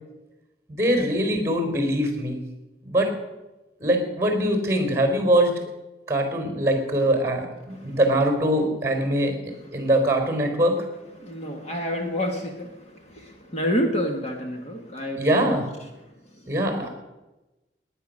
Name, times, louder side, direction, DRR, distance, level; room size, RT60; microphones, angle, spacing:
voice 1, 0.7-2.4 2.8-3.1 3.8-5.5 6.1-9.4 9.7-10.9 15.2-15.7 16.5-16.9, right 1 dB, 15° right, 5 dB, 4.0 m, -22 dB
voice 2, 11.2-15.6 16.3-16.4 16.8-16.9, equal, 40° left, 2 dB, 1.8 m, -29 dB
19.0 x 10.5 x 6.5 m, 1.0 s
head